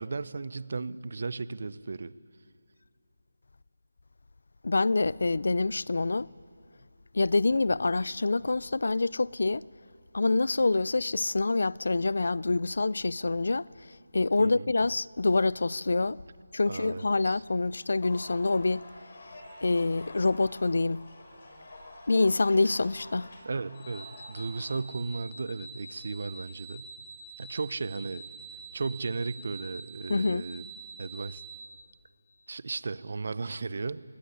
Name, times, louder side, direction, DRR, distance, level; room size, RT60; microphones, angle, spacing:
voice 1, 0.0-2.1 14.4-14.7 16.7-17.4 23.4-26.9 27.4-28.2 28.7-30.7 31.0-31.4 32.5-34.0, right 4 dB, 50° right, 0.8 m, -35 dB
voice 2, 4.6-6.3 7.1-9.6 10.1-13.7 14.1-16.2 16.5-18.8 19.6-21.0 22.1-23.3 30.1-30.4, left 3 dB, 65° left, 0.5 m, -26 dB
sound 1, 17.1-24.8, left 2 dB, 45° left, 4.5 m, -48 dB
sound 2, 23.7-31.6, right 4 dB, 15° left, 2.2 m, -46 dB
22.0 x 18.5 x 9.8 m
figure-of-eight pair, 170°, 0 cm